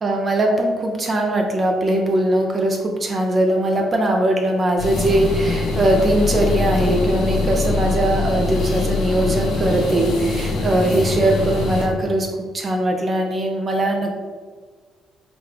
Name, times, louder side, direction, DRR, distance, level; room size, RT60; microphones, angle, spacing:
voice 1, 0.0-14.1, right 1 dB, 40° right, 2 dB, 0.6 m, -20 dB
sound 1, 4.8-11.9, left 3 dB, 85° left, 1.2 m, -23 dB
4.8 x 2.3 x 3.4 m, 1.5 s
cardioid pair, 80°, 0 cm